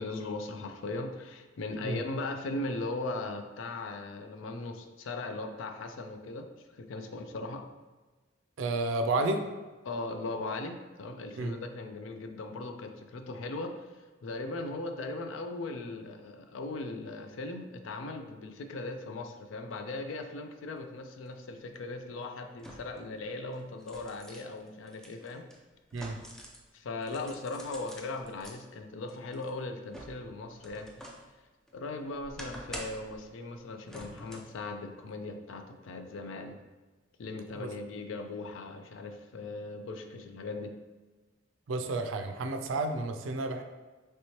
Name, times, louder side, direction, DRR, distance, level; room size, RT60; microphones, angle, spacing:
voice 1, 0.0-7.6 9.8-25.5 26.7-30.9 31.7-36.6 37.2-40.7, left 2 dB, 75° left, 6 dB, 0.4 m, -38 dB
voice 2, 8.6-9.4 11.4-11.5 25.9-26.2 37.6-37.7 41.7-43.6, right 2 dB, 75° right, 6 dB, 0.4 m, -31 dB
sound 1, 21.3-21.4 22.6-23.1 23.5-26.7 27.0-28.6 29.1-31.3 31.7-33.2 33.9-34.6 35.0-35.1, equal, 5° left, 0.3 m, -47 dB
3.2 x 3.0 x 2.8 m, 1.2 s
head